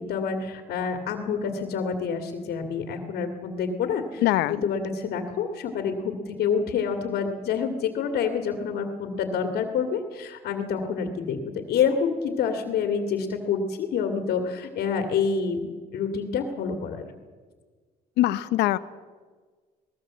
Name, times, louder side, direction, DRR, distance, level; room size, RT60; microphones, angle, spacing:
voice 1, 0.0-4.2 4.5-17.1, left 6 dB, 70° left, 5 dB, 2.3 m, -27 dB
voice 2, 4.2-4.7 18.2-18.8, left 15 dB, 85° left, 14 dB, 0.9 m, -22 dB
20.5 x 19.0 x 7.6 m, 1.5 s
cardioid pair, 110°, 17 cm